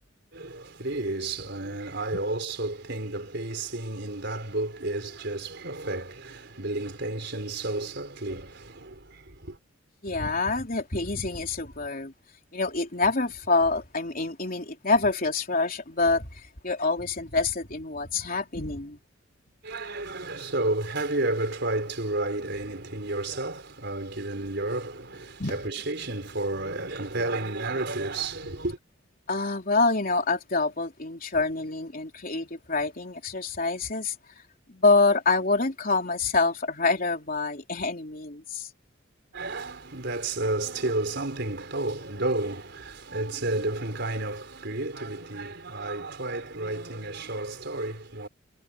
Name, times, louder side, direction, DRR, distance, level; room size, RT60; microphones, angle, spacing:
voice 1, 0.3-9.6 19.6-28.8 39.3-48.3, right 2 dB, 60° right, 4.6 m, -31 dB
voice 2, 10.0-12.1 12.5-19.0 25.4-25.6 28.4-28.5 29.3-34.1 34.7-38.7, left 3 dB, 45° left, 3.6 m, -26 dB
head